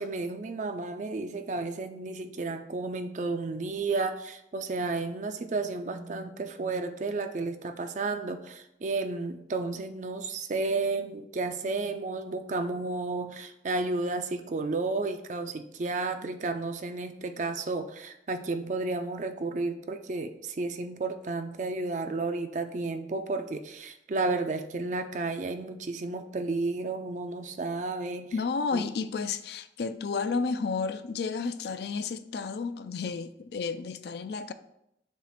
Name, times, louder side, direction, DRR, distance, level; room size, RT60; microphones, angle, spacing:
voice 1, 0.0-28.3 28.7-28.9, right 3 dB, 40° right, 0.4 m, -32 dB
voice 2, 28.3-34.5, left 4 dB, 60° left, 0.4 m, -32 dB
7.1 x 2.5 x 5.7 m
head